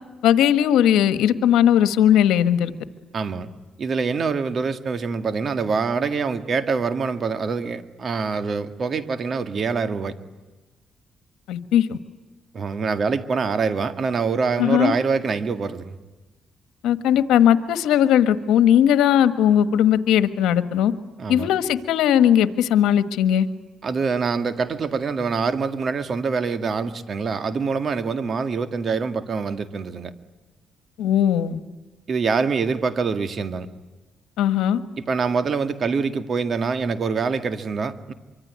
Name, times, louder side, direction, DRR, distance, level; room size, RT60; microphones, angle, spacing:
voice 1, 0.2-2.7 11.5-12.0 14.6-14.9 16.8-20.9 21.3-23.5 31.0-31.6 34.4-34.8, left 10 dB, 90° left, 11 dB, 1.4 m, -18 dB
voice 2, 3.1-3.5 3.8-10.2 12.5-16.0 21.2-21.5 23.8-30.1 32.1-33.7 35.0-38.1, right 5 dB, 50° right, 9 dB, 1.9 m, -25 dB
25.0 x 25.0 x 9.5 m, 1.2 s
cardioid pair, 90°, 0 cm